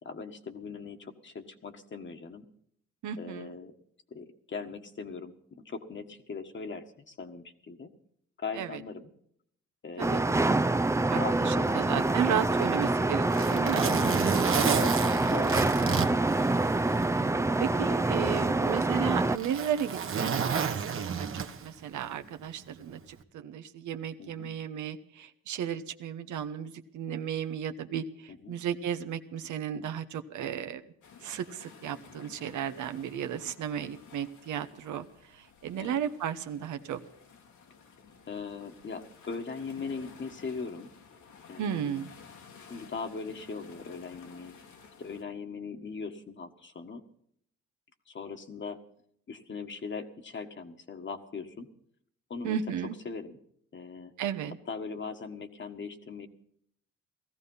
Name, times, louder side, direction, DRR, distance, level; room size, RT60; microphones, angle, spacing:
voice 1, 0.0-2.4 3.2-3.7 4.1-5.3 5.6-7.9 8.4-9.1 9.8-10.5 11.1-12.5 14.5-16.5 24.2-24.5 28.3-28.5 35.8-36.0 38.3-40.9 41.5-42.1 42.7-44.6 45.0-47.0 48.1-48.8 49.3-51.7 52.3-52.6 53.0-53.4 53.7-54.1 54.7-56.3, left 4 dB, 40° left, 7 dB, 1.6 m, -40 dB
voice 2, 3.0-3.5 8.6-8.8 10.0-10.2 11.1-14.4 17.1-30.8 31.2-37.0 41.6-42.1 52.4-53.0 54.2-54.6, right 9 dB, 75° right, 9 dB, 1.2 m, -34 dB
sound 1, 10.0-19.4, right 2 dB, 10° right, 0.6 m, -26 dB
Zipper (clothing), 12.6-17.1 17.5-17.6 18.4-21.8 23.0-23.2, right 7 dB, 45° right, 1.4 m, -31 dB
sound 2, 31.0-45.2, left 5 dB, 75° left, 2.3 m, -54 dB
17.5 x 14.5 x 5.6 m, 0.68 s
cardioid pair, 90°, 30 cm